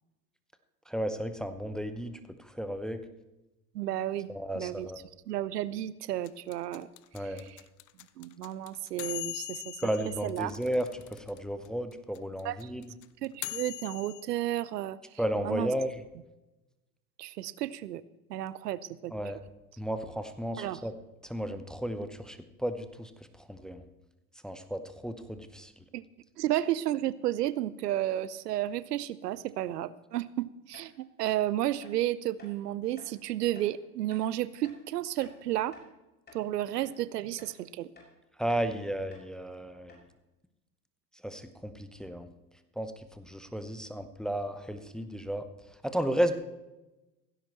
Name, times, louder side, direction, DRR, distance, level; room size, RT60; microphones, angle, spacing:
voice 1, 0.9-3.0 4.3-5.0 7.1-7.4 9.8-12.9 15.2-16.0 19.1-19.4 19.8-20.9 21.2-23.1 23.4-23.8 24.4-25.7 38.4-39.9 41.2-42.3 42.8-42.9 43.2-45.4 45.8-46.3, equal, ahead, 9 dB, 0.8 m, -33 dB
voice 2, 3.7-4.3 4.5-4.9 5.3-6.9 7.4-7.5 8.2-9.8 10.2-10.5 12.4-12.7 13.2-15.0 15.4-15.7 17.2-18.0 18.3-19.1 20.6-20.8 25.9-26.0 26.4-35.8 36.3-37.9, right 13 dB, 70° right, 18 dB, 0.8 m, -32 dB
sound 1, 6.2-11.4 11.6-11.7 11.9-14.2, left 21 dB, 35° left, 0.7 m, -40 dB
sound 2, 30.7-30.9 31.3-31.4 31.8-31.9 32.4-32.5 33.0-33.1 33.5-33.7 34.1-34.3 34.6-34.8 35.2-35.9 36.3-36.4 36.8-36.9 37.4-37.6 37.9-38.1 38.5-38.7 39.1-39.3 39.5-39.6 39.9-40.1, left 2 dB, 20° left, 6.4 m, -54 dB
16.5 x 16.0 x 3.1 m, 1.0 s
figure-of-eight pair, 85°, 50 cm